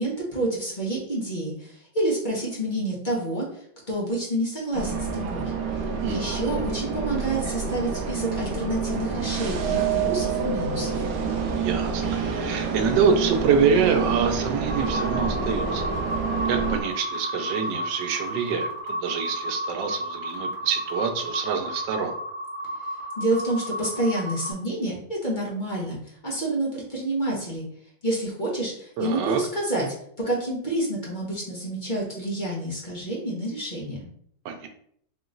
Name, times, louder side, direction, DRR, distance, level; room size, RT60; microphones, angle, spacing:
voice 1, 0.0-5.5 6.0-11.0 23.2-27.6 28.0-29.9 30.2-34.1, right 1 dB, 30° left, -5 dB, 1.2 m, -28 dB
sound 1, 4.7-16.8, right 5 dB, 65° right, 0.9 m, -28 dB
voice 2, 6.0-6.6 11.5-15.9 16.5-22.1 29.0-29.4 34.4-34.7, right 6 dB, 85° right, 6 dB, 1.3 m, -26 dB
sound 2, 14.7-24.5, equal, 40° right, 0.8 m, -32 dB
3.7 x 2.9 x 3.8 m, 0.66 s
omnidirectional pair, 1.9 m